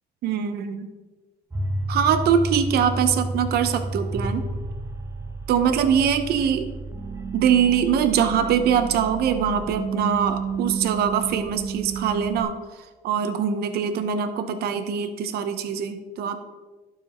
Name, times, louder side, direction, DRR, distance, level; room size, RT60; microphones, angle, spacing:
voice 1, 0.2-0.9 1.9-4.4 5.5-6.7 7.3-12.5 13.0-16.4, right 8 dB, 70° right, 9 dB, 0.7 m, -23 dB
sound 1, 1.5-12.4, right 3 dB, 15° right, 0.7 m, -31 dB
11.5 x 4.8 x 2.9 m, 1.3 s
cardioid pair, 110°, 17 cm